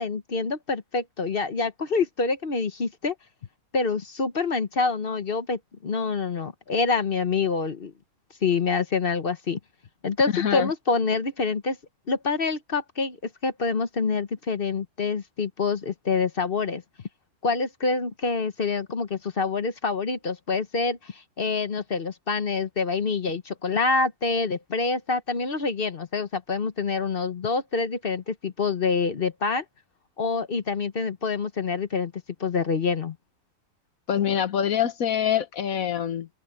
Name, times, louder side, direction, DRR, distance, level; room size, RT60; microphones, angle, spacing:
voice 1, 0.0-3.1 3.7-7.9 8.4-9.6 10.0-11.8 12.1-13.2 13.4-16.8 17.4-29.6 30.2-32.1 32.4-33.2, left 4 dB, 40° left, 1.1 m, -26 dB
voice 2, 10.3-10.7 34.1-36.3, left 9 dB, 65° left, 1.5 m, -25 dB
open air
omnidirectional pair, 1.5 m